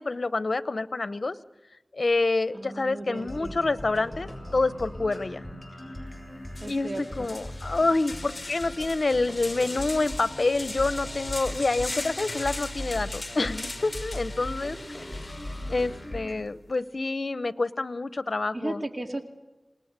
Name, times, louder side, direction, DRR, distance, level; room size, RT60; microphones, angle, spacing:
voice 1, 0.0-1.4 1.9-5.4 6.7-15.0 15.7-18.8, left 3 dB, 75° left, 15 dB, 0.8 m, -27 dB
voice 2, 2.5-3.6 6.6-7.3 18.5-19.2, right 2 dB, 50° right, 5 dB, 2.3 m, -35 dB
sound 1, 3.1-16.3, left 1 dB, 5° left, 7.7 m, -39 dB
sound 2, 6.1-6.2 6.5-16.1, left 2 dB, 50° left, 1.1 m, -39 dB
28.0 x 20.0 x 8.1 m, 1.1 s
wide cardioid pair, 40°, 0 cm